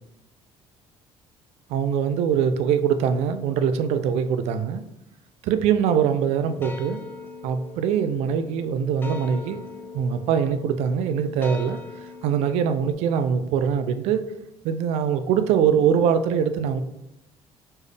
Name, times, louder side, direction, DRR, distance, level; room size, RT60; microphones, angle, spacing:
voice 1, 1.7-4.8 5.4-7.0 7.4-9.6 9.9-11.8 12.2-14.2 14.6-16.8, right 7 dB, 80° right, 10 dB, 0.4 m, -23 dB
sound 1, 6.4-12.9, left 4 dB, 20° left, 0.5 m, -40 dB
4.3 x 3.2 x 3.3 m, 0.86 s
cardioid pair, 140°, 11 cm